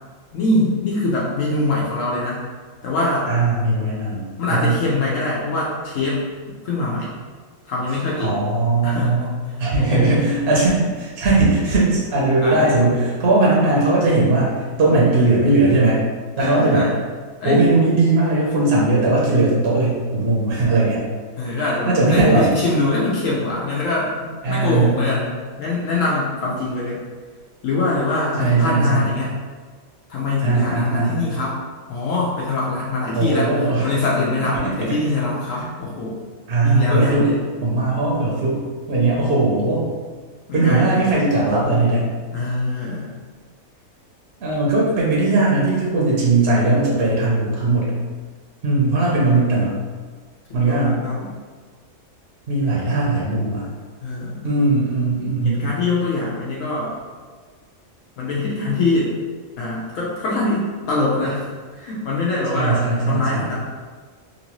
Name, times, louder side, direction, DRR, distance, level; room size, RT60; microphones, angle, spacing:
voice 1, 0.3-2.4 2.8-3.3 4.4-7.1 7.6-8.3 8.8-9.2 9.5-10.2 12.4-12.7 16.4-16.9 17.4-17.7 21.4-27.0 27.6-29.3 30.1-31.6 31.9-36.2 36.6-37.4 40.5-41.1 42.3-43.1 49.2-49.3 50.5-51.3 54.0-54.6 55.4-56.9 58.2-59.2 59.6-61.5 61.7-63.5, left 2 dB, 70° left, -5 dB, 1.0 m, -23 dB
voice 2, 3.3-4.8 8.2-16.0 16.4-16.9 17.4-21.1 21.9-22.5 24.4-25.0 28.4-29.1 30.4-31.2 33.2-34.0 34.5-34.7 35.6-35.7 36.5-37.3 37.6-39.9 40.5-42.1 44.4-48.0 48.6-49.8 50.5-51.0 52.5-53.7 54.4-55.7 62.5-63.5, right 2 dB, 55° right, -5 dB, 0.8 m, -19 dB
3.0 x 2.6 x 2.9 m, 1.5 s
omnidirectional pair, 1.4 m